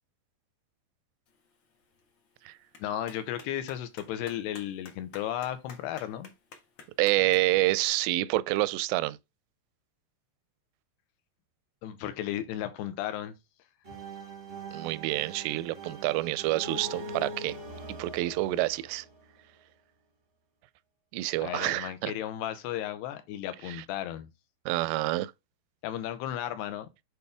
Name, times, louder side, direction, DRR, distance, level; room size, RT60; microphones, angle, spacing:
Clapping, 1.3-7.9, left 4 dB, 65° left, 1.3 m, -53 dB
voice 1, 2.8-6.3 11.8-13.4 21.4-24.3 25.8-26.9, left 11 dB, 80° left, 2.9 m, -34 dB
voice 2, 7.0-9.2 14.7-17.6 17.9-19.1 21.1-22.1 23.7-23.8 24.7-25.3, right 18 dB, 85° right, 2.7 m, -28 dB
sound 1, 13.8-19.6, right 2 dB, 45° right, 0.7 m, -42 dB
8.2 x 4.4 x 3.5 m
omnidirectional pair, 4.9 m